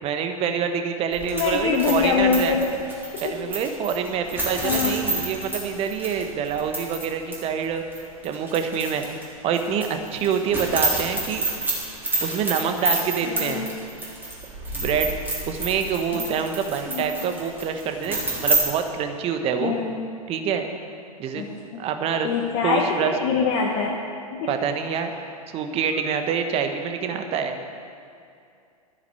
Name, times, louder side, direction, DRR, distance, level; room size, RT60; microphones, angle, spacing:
voice 1, 0.0-2.5 3.2-7.8 8.2-9.1 9.4-11.4 12.2-13.7 14.7-15.1 15.4-19.8 20.3-20.7 21.2-21.4 21.8-22.3 22.6-23.1 24.5-25.1 25.5-27.6, right 7 dB, 30° right, 6 dB, 1.3 m, -26 dB
sound 1, 1.1-7.1 7.3-7.4 7.9-9.2 9.5-18.6, right 2 dB, 10° right, 3.7 m, -28 dB
voice 2, 1.3-2.7 3.1-3.4 4.6-5.0 13.2-13.6 16.1-16.2 16.9-17.2 19.6-20.1 21.3-21.8 22.2-24.0 24.3-24.5 24.8-25.3, left 6 dB, 45° left, -2 dB, 1.5 m, -25 dB
12.5 x 10.5 x 6.9 m, 2.4 s
figure-of-eight pair, 95°, 19 cm